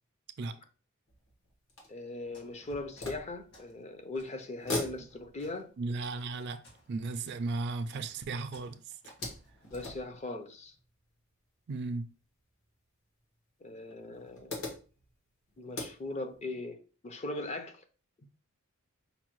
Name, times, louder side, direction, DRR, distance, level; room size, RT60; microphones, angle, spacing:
sound 1, 1.1-4.0 4.4-8.3 8.6-11.3 12.2-12.3 12.6-12.7 13.8-16.5, left 2 dB, 70° left, 1.4 m, -43 dB
voice 1, 1.9-5.7 9.7-10.7 13.6-14.6 15.6-16.8 17.0-17.8, left 2 dB, 30° left, 0.5 m, -39 dB
sound 2, 2.3-2.6 2.9-3.8 4.1-10.0, left 1 dB, 50° left, 1.5 m, -60 dB
voice 2, 5.8-6.6 6.9-9.1 11.7-12.1, right 3 dB, 50° right, 0.3 m, -35 dB
5.3 x 2.2 x 3.0 m
head